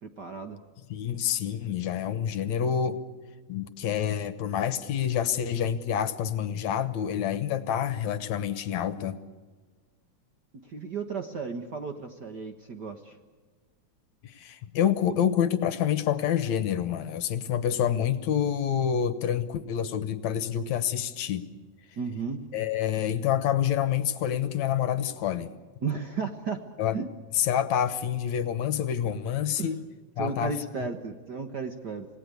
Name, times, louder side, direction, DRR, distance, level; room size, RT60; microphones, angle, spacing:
voice 1, 0.0-0.6 10.6-13.2 22.0-22.4 25.8-26.6 26.9-27.1 29.6-29.7 30.2-32.1, right 5 dB, 50° right, 6 dB, 1.4 m, -34 dB
voice 2, 0.9-3.0 3.5-9.2 14.2-21.5 22.5-25.5 26.8-26.9 27.4-29.8 30.2-30.6, left 9 dB, 75° left, 13 dB, 2.3 m, -27 dB
28.0 x 18.0 x 8.3 m, 1.4 s
omnidirectional pair, 3.4 m